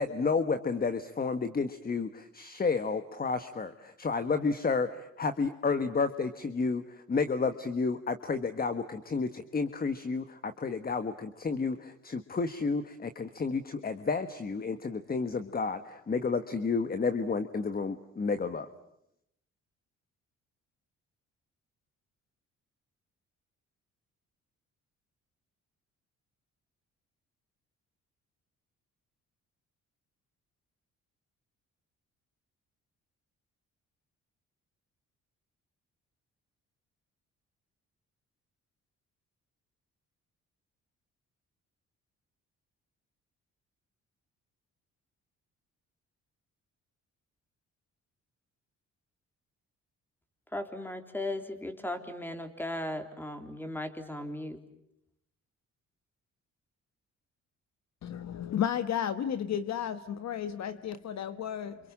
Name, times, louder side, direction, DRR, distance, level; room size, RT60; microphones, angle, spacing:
voice 1, 0.0-6.8 7.1-18.7, left 4 dB, 30° left, 1.5 m, -31 dB
voice 2, 50.5-54.6, left 1 dB, 5° left, 3.7 m, -37 dB
voice 3, 58.0-61.8, left 9 dB, 60° left, 1.4 m, -33 dB
29.5 x 27.0 x 7.4 m
cardioid pair, 90°, 30 cm